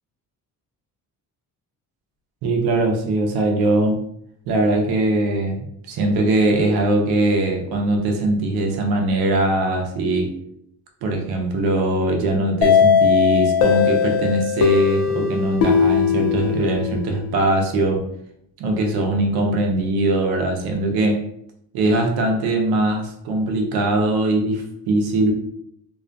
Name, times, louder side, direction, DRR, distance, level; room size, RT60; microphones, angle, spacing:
voice 1, 2.4-4.0 4.5-10.3 11.0-18.0 18.6-21.2 21.7-25.3, right 2 dB, 80° right, 3 dB, 0.6 m, -21 dB
sound 1, 12.6-17.3, left 7 dB, 80° left, 0.5 m, -18 dB
2.3 x 2.2 x 2.5 m, 0.72 s
cardioid pair, 140°, 37 cm